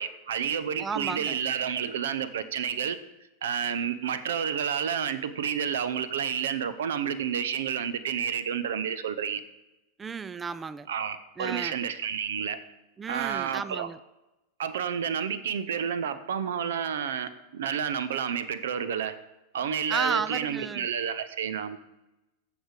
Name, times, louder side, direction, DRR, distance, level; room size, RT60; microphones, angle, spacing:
voice 1, 0.0-3.0 3.4-9.4 10.9-12.6 13.1-13.9 14.6-19.2 19.5-21.8, right 8 dB, 60° right, 14 dB, 0.6 m, -30 dB
voice 2, 0.8-1.4 10.0-10.9 11.4-11.8 13.0-14.0 19.9-20.9, right 5 dB, 15° right, 17 dB, 0.4 m, -33 dB
15.0 x 5.1 x 5.1 m, 0.97 s
figure-of-eight pair, 90°, 0 cm